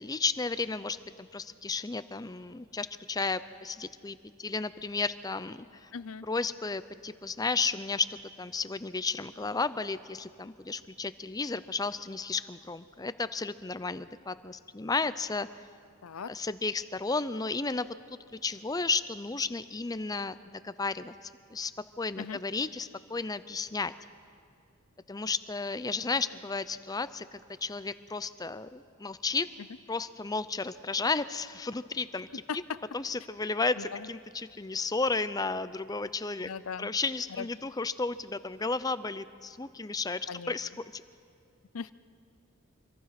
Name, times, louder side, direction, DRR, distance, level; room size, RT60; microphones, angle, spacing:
voice 1, 0.0-5.9 6.3-15.5 16.3-17.9 18.4-20.3 20.6-21.7 22.0-23.9 25.1-29.5 29.9-32.4 32.9-36.5 36.8-41.0, left 4 dB, 20° left, 14 dB, 0.5 m, -33 dB
voice 2, 5.9-6.3 16.0-16.3 22.2-22.4 32.5-32.8 33.8-34.1 36.4-36.9 37.3-37.5 40.3-40.5 41.7-41.9, left 6 dB, 85° left, 16 dB, 0.6 m, -38 dB
25.5 x 24.0 x 5.9 m, 2.4 s
head